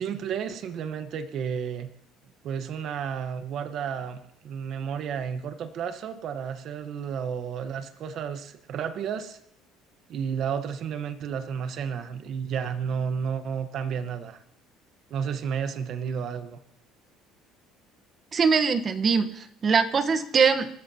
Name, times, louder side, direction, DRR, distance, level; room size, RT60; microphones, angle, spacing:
voice 1, 0.0-1.9 2.4-9.4 10.1-14.4 15.1-16.6, right 7 dB, 55° right, 9 dB, 1.2 m, -32 dB
voice 2, 18.3-20.7, right 5 dB, 30° right, 9 dB, 1.2 m, -22 dB
27.5 x 13.5 x 2.9 m, 0.70 s
cardioid pair, 130°, 0 cm